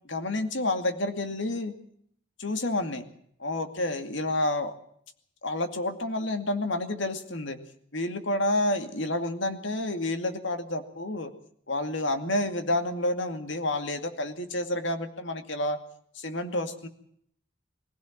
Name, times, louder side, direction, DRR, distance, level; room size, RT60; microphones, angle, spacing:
voice 1, 0.0-1.7 2.4-3.1 3.4-4.7 5.4-7.6 7.9-11.3 11.7-15.8 16.1-16.9, left 1 dB, 60° left, 8 dB, 2.4 m, -29 dB
23.0 x 16.5 x 7.4 m, 0.67 s
head